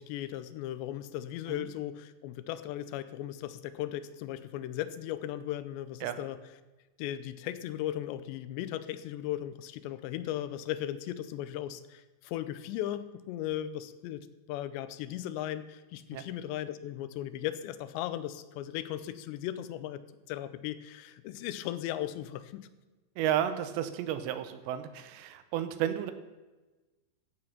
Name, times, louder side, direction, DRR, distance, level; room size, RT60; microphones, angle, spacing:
voice 1, 0.0-6.4 7.0-20.0 20.3-22.7, left 12 dB, 90° left, 13 dB, 2.9 m, -37 dB
voice 2, 23.2-26.1, right 11 dB, 85° right, 10 dB, 3.0 m, -32 dB
14.0 x 7.9 x 5.8 m, 1.2 s
omnidirectional pair, 5.0 m